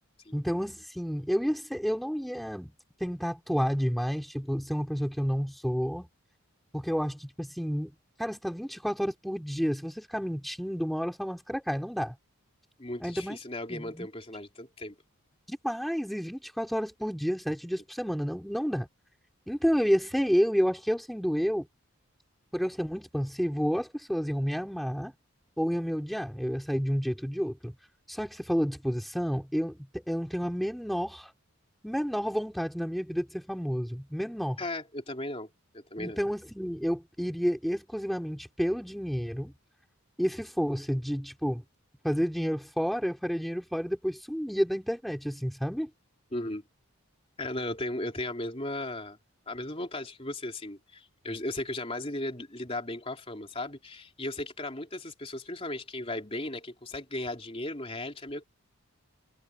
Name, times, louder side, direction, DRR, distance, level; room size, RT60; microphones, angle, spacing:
voice 1, 0.3-2.7 3.0-6.1 6.7-7.9 8.2-12.1 13.0-13.4 13.7-14.1 15.5-18.9 19.5-21.7 22.5-25.1 25.6-27.7 28.1-31.3 31.8-34.6 36.0-39.5 40.2-41.6 42.0-45.9, equal, ahead, 3.0 m, -30 dB
voice 2, 12.8-15.0 34.6-36.2 46.3-46.6 47.4-49.2 49.5-58.4, left 1 dB, 25° left, 3.5 m, -36 dB
head